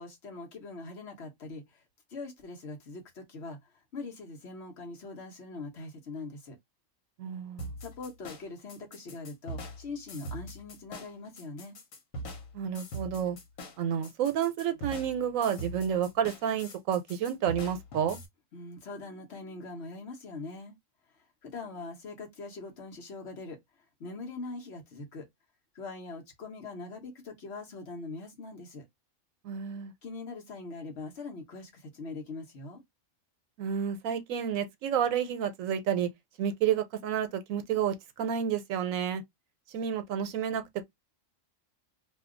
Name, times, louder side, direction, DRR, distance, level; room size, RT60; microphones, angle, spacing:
voice 1, 0.0-1.8 2.1-6.6 7.8-11.8 18.5-20.7 21.4-23.6 24.0-25.3 25.7-28.9 30.0-32.8, left 3 dB, 55° left, 1.2 m, -42 dB
voice 2, 7.2-7.7 12.5-13.4 13.8-18.2 29.4-29.9 33.6-36.1 36.4-39.2 39.7-40.6, right 8 dB, 85° right, 1.0 m, -30 dB
sound 1, 7.6-18.3, right 1 dB, 85° left, 1.3 m, -42 dB
2.7 x 2.3 x 3.6 m
omnidirectional pair, 1.4 m